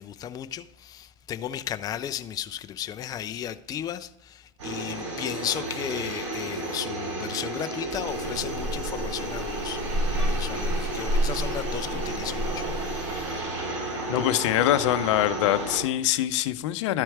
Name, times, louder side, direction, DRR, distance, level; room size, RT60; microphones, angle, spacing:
voice 1, 0.0-13.7, left 10 dB, 25° left, 0.4 m, -35 dB
sound 1, 4.6-15.8, right 2 dB, 75° right, 3.8 m, -32 dB
sound 2, 8.1-13.4, right 1 dB, 30° right, 3.0 m, -30 dB
voice 2, 14.1-17.0, left 14 dB, 70° left, 0.6 m, -24 dB
12.5 x 4.5 x 4.6 m
supercardioid pair, 120°, 16 cm